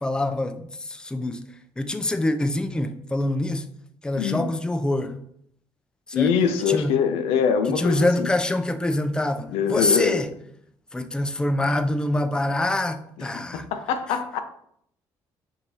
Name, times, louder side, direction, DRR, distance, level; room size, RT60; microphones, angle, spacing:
voice 1, 0.0-1.4 1.8-3.7 4.0-5.2 6.1-6.3 6.7-6.9 7.8-10.3 10.9-13.7, left 1 dB, 10° left, 0.4 m, -25 dB
voice 2, 6.1-8.3 9.5-10.2 13.2-14.4, left 7 dB, 80° left, 0.4 m, -24 dB
4.5 x 2.6 x 2.7 m
supercardioid pair, 65°, 10 cm